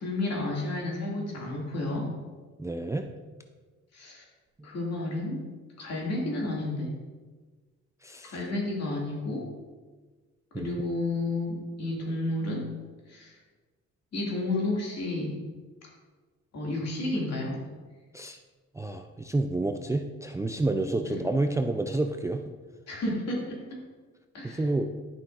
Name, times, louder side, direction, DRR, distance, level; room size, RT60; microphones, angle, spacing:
voice 1, 0.0-2.1 3.9-4.2 4.6-5.4 5.8-6.9 8.2-9.5 10.5-12.7 13.1-13.4 14.1-15.3 16.5-17.6 21.0-21.2 22.9-23.8 24.3-24.6, left 2 dB, 60° left, -2 dB, 2.3 m, -31 dB
voice 2, 2.6-3.1 4.6-4.7 8.0-8.4 10.5-10.7 18.1-18.4 18.7-22.4 24.4-24.9, right 2 dB, 10° right, 5 dB, 0.4 m, -29 dB
11.0 x 5.7 x 2.5 m, 1.3 s
cardioid pair, 90°, 30 cm